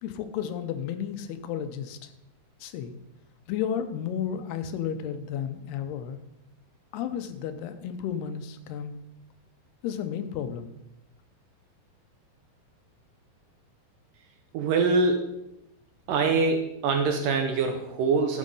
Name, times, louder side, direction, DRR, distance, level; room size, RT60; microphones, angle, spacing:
voice 1, 0.0-2.1 2.6-2.9 3.5-6.2 6.9-8.9 9.8-10.7, left 8 dB, 85° left, 9 dB, 2.8 m, -32 dB
voice 2, 14.5-15.3 16.1-18.4, right 4 dB, 75° right, 5 dB, 2.1 m, -24 dB
12.5 x 6.4 x 5.4 m, 0.86 s
omnidirectional pair, 4.5 m